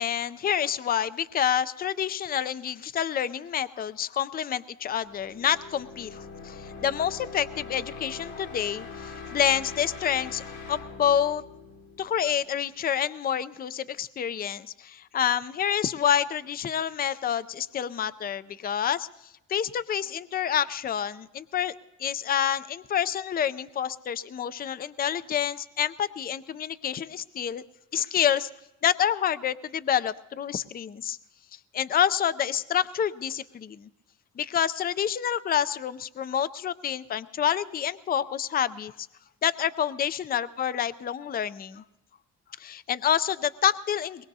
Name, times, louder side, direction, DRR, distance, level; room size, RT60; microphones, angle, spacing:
voice 1, 0.0-11.4 12.0-19.1 19.5-21.7 22.0-27.6 27.9-28.5 28.8-31.2 31.7-33.9 34.4-38.9 39.4-41.8 42.6-44.2, left 9 dB, 30° left, 15 dB, 0.4 m, -28 dB
sound 1, 4.9-12.6, left 4 dB, 70° left, 1.8 m, -42 dB
22.5 x 20.0 x 2.7 m, 0.89 s
cardioid pair, 90°, 30 cm